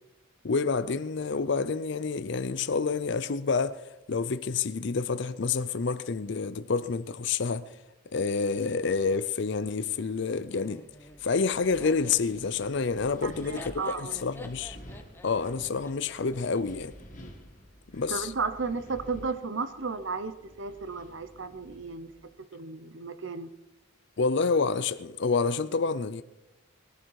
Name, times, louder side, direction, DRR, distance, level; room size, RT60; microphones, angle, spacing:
voice 1, 0.4-7.8 8.1-10.8 11.2-14.8 15.2-16.9 17.9-18.3 24.2-26.2, left 4 dB, 55° left, 0.5 m, -28 dB
Laughter, 10.5-16.6, left 1 dB, 10° left, 0.9 m, -48 dB
Wind, 10.8-22.3, equal, 35° left, 2.1 m, -50 dB
voice 2, 13.2-14.2 18.1-22.1 22.5-23.5, right 4 dB, 60° right, 0.8 m, -34 dB
20.0 x 11.0 x 4.8 m
head